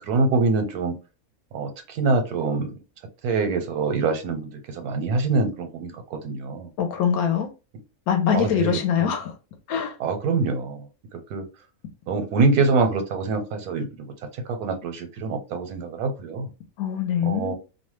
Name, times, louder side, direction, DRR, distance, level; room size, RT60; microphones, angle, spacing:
voice 1, 0.0-1.0 1.5-2.7 3.2-6.7 8.3-9.1 10.0-10.8 11.3-11.5 12.1-13.9 14.5-16.5 17.2-17.6, right 3 dB, 85° right, 1.1 m, -25 dB
voice 2, 6.8-7.5 8.1-9.3 9.7-9.9 16.8-17.6, left 8 dB, 75° left, 1.1 m, -23 dB
2.7 x 2.1 x 3.1 m
omnidirectional pair, 1.6 m